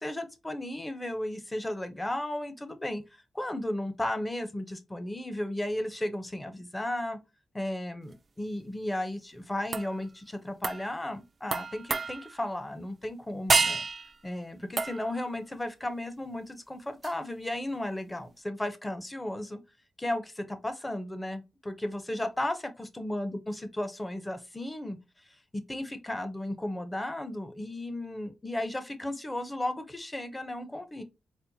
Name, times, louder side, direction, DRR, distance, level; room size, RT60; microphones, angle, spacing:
voice 1, 0.0-3.0 3.3-7.2 7.5-13.9 14.2-19.6 20.0-25.0 25.5-31.0, left 1 dB, 15° left, 0.6 m, -34 dB
sound 1, 9.7-10.0 10.6-10.9 11.5-12.4 13.5-14.2 14.8-15.2 17.0-17.1, right 4 dB, 40° right, 0.3 m, -29 dB
4.2 x 2.1 x 2.7 m
cardioid pair, 95°, 0 cm